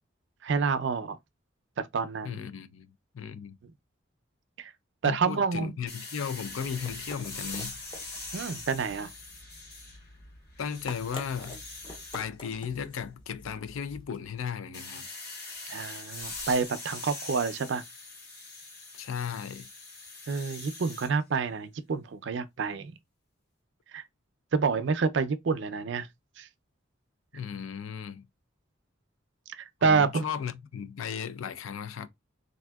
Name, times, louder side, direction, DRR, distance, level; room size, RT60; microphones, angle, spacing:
voice 1, 0.4-1.2 1.8-2.4 4.6-4.7 5.0-5.7 8.3-9.1 15.7-17.8 20.3-22.9 23.9-24.0 24.5-26.1 26.4-26.5 29.5-30.2, right 5 dB, 60° right, 0.4 m, -28 dB
voice 2, 2.2-2.9 3.1-3.6 5.0-7.8 10.6-11.6 12.1-15.1 18.9-19.7 27.3-28.3 29.8-32.1, left 7 dB, 80° left, 0.4 m, -36 dB
sound 1, 5.9-10.2 10.6-12.2 14.7-21.1, left 3 dB, 50° left, 1.9 m, -42 dB
sound 2, 6.2-14.4, left 1 dB, 25° left, 0.5 m, -48 dB
3.5 x 2.6 x 2.2 m
head